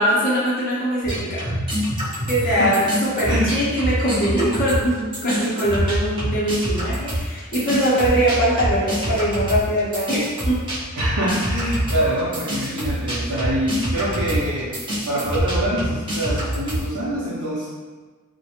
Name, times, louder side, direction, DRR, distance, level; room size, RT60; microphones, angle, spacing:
voice 1, 0.0-1.6 2.3-10.6, equal, 40° left, -7 dB, 0.6 m, -22 dB
sound 1, 1.0-4.9 5.1-16.9, equal, 20° right, 0.6 m, -26 dB
voice 2, 2.4-2.9 3.3-3.6 10.9-14.8 15.0-17.7, right 1 dB, 75° right, -8 dB, 0.6 m, -25 dB
2.3 x 2.1 x 2.9 m, 1.4 s
head